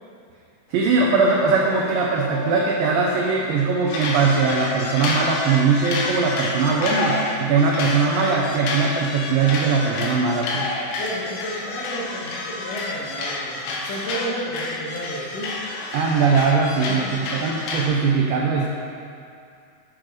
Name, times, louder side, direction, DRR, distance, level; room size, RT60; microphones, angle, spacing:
voice 1, 0.7-10.7 15.9-17.0 17.3-18.7, right 4 dB, 80° right, -2 dB, 2.2 m, -20 dB
sound 1, 0.8-3.5 3.9-17.9, left 2 dB, 80° left, 2.7 m, -29 dB
voice 2, 11.0-15.6 16.9-17.2, equal, 60° left, -4 dB, 1.9 m, -32 dB
7.5 x 6.3 x 5.1 m, 2.3 s
omnidirectional pair, 4.5 m